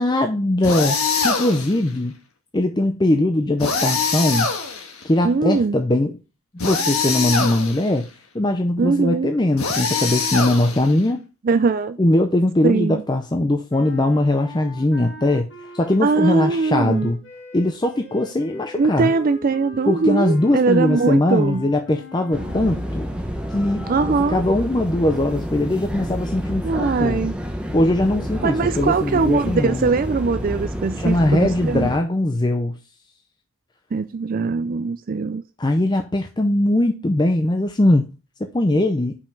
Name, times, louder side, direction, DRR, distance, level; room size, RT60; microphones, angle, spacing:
voice 1, 0.0-2.1 2.5-4.5 5.0-6.2 6.6-8.1 8.3-11.2 12.0-15.5 15.7-17.2 17.5-19.1 19.9-23.1 23.5-27.2 27.7-29.9 31.0-32.8 35.6-38.1 38.5-39.2, left 1 dB, 20° left, 0.5 m, -20 dB
sound 1, 0.6-1.8 3.6-5.0 6.6-7.9 9.6-11.0, left 4 dB, 80° left, 1.5 m, -23 dB
voice 2, 5.2-5.8 8.8-9.3 11.4-12.0 12.6-13.0 16.0-17.1 18.8-21.7 23.9-24.4 26.6-27.4 28.4-31.9 33.9-35.4, right 4 dB, 40° right, 0.4 m, -21 dB
sound 2, 13.7-22.9, left 1 dB, 50° left, 1.8 m, -41 dB
sound 3, 22.3-32.0, equal, 5° right, 0.8 m, -29 dB
5.7 x 5.0 x 5.2 m
head